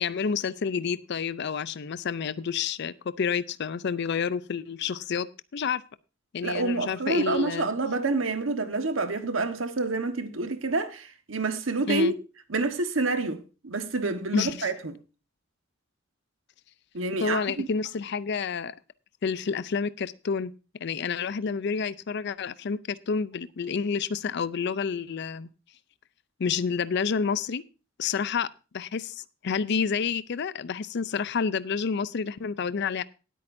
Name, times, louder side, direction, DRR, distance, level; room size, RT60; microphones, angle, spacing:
voice 1, 0.0-5.3 5.5-5.8 6.3-7.7 11.8-12.1 14.3-14.7 17.2-18.7 19.2-20.5 20.8-25.5 26.4-27.6 28.0-28.5 28.7-33.0, left 6 dB, 60° left, 0.5 m, -29 dB
voice 2, 6.4-12.1 12.5-14.9 16.9-17.7, right 3 dB, 90° right, 1.4 m, -28 dB
18.5 x 8.6 x 2.6 m
head